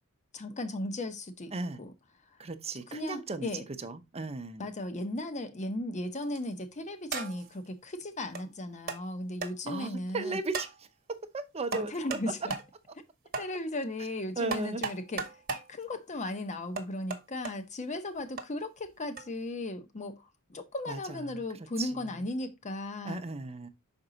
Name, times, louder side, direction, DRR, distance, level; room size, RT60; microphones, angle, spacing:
voice 1, 0.3-1.5 1.8-1.9 2.9-3.6 4.6-10.4 11.7-12.5 13.4-15.2 15.7-23.2, left 1 dB, 35° left, 0.8 m, -36 dB
voice 2, 2.4-3.5 3.8-4.7 9.7-10.7 11.1-12.2 14.4-14.8 20.9-21.4 21.8-21.9 23.0-23.7, right 3 dB, 30° right, 0.6 m, -36 dB
sound 1, 6.2-6.5 7.1-7.5 8.3-8.4 8.9-9.0 9.4-9.5 10.5-10.8 11.7-12.2 12.5-12.7 13.3-13.5 14.5-15.7 16.8-17.5 18.4-18.5 19.2-19.3, right 4 dB, 45° right, 1.0 m, -36 dB
5.9 x 4.4 x 3.8 m
head